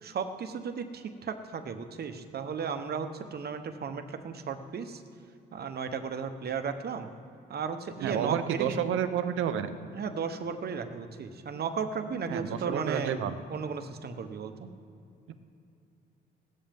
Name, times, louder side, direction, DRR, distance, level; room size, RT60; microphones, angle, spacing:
voice 1, 0.0-5.0 5.5-7.1 7.5-8.8 9.9-13.2 13.5-14.7, right 6 dB, 55° right, 8 dB, 1.1 m, -35 dB
voice 2, 8.0-9.7 12.3-13.3, right 9 dB, 85° right, 10 dB, 0.9 m, -30 dB
16.5 x 13.5 x 3.6 m, 2.7 s
cardioid pair, 90°, 20 cm